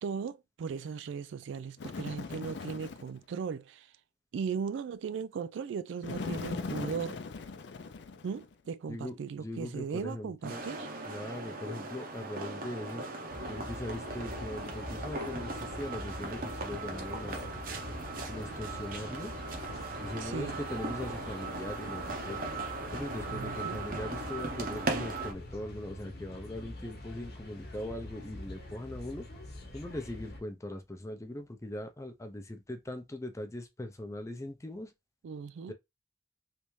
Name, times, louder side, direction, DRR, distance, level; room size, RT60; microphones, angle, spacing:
voice 1, 0.0-3.9 4.3-7.2 8.2-10.9 20.2-20.6 23.3-23.8 35.2-35.7, right 6 dB, 85° right, 0.3 m, -37 dB
Bird, 1.8-3.2 6.0-8.5, left 4 dB, 70° left, 0.5 m, -39 dB
voice 2, 8.9-10.6 11.1-13.1 13.5-17.5 18.2-19.3 20.0-22.4 22.9-29.3 29.7-34.9 35.7-35.8, left 1 dB, 15° left, 0.5 m, -40 dB
sound 1, 10.4-25.3, right 3 dB, 50° right, 0.7 m, -38 dB
sound 2, 13.3-30.4, left 1 dB, 55° left, 0.9 m, -45 dB
3.3 x 2.6 x 3.1 m
head